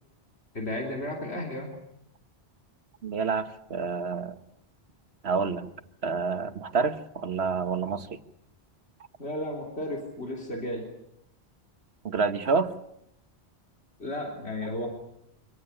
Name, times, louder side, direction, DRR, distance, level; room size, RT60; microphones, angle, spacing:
voice 1, 0.5-1.7 9.2-10.9 14.0-14.9, left 1 dB, 80° left, 2 dB, 3.7 m, -33 dB
voice 2, 3.0-4.3 5.2-5.7 6.0-8.2 12.0-12.7, right 5 dB, 75° right, 10 dB, 1.6 m, -28 dB
25.0 x 18.5 x 9.8 m, 0.76 s
omnidirectional pair, 1.1 m